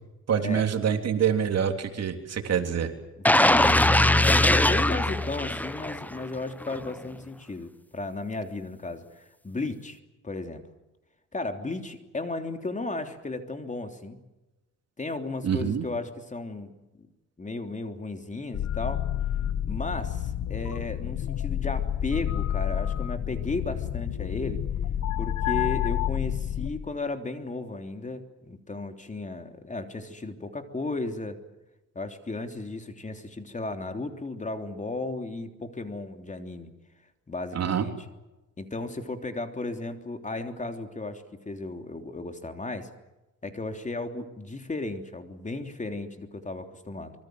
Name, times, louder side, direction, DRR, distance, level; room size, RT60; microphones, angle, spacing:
voice 1, 0.3-2.9 15.4-15.8 37.5-37.9, right 8 dB, 55° right, 6 dB, 3.4 m, -26 dB
voice 2, 3.2-10.0 10.2-10.6 11.3-14.2 15.0-16.7 17.0-17.1 17.4-19.1 19.7-24.6 25.2-31.4 31.9-36.7 37.3-37.9 38.6-42.9 43.4-47.1, left 2 dB, 25° left, 6 dB, 3.3 m, -35 dB
sound 1, 3.2-6.2 6.6-6.8, left 1 dB, 5° left, 1.1 m, -21 dB
sound 2, 18.5-26.7, left 11 dB, 65° left, 1.8 m, -29 dB
25.5 x 23.5 x 7.9 m, 1.0 s
cardioid pair, 90°, 30 cm